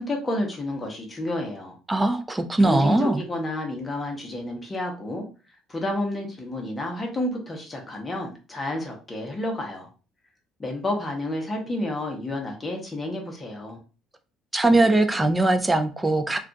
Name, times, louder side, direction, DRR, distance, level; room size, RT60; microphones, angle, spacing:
voice 1, 0.0-1.8 2.6-5.2 5.7-9.9 10.6-13.8, left 1 dB, 20° left, 1 dB, 0.7 m, -30 dB
voice 2, 1.9-3.2 14.5-16.4, right 2 dB, 10° right, 8 dB, 0.4 m, -21 dB
2.3 x 2.3 x 3.8 m, 0.35 s
cardioid pair, 135°, 0 cm